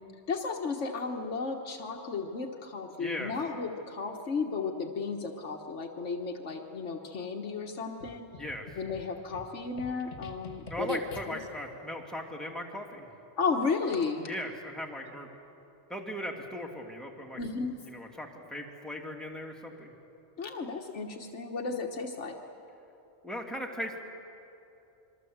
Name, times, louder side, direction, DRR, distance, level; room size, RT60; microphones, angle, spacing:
voice 1, 0.3-8.2 8.8-11.0 11.3-11.4 13.4-14.3 17.4-17.8 20.4-22.4, left 4 dB, 90° left, 2 dB, 1.6 m, -33 dB
voice 2, 3.0-3.3 8.4-8.7 10.7-13.1 14.3-15.3 15.9-17.4 17.8-19.9 23.2-24.0, equal, ahead, 0 dB, 2.7 m, -38 dB
sound 1, 8.0-11.6, left 3 dB, 50° left, 1.6 m, -48 dB
27.5 x 23.0 x 8.0 m, 2.8 s
omnidirectional pair, 1.2 m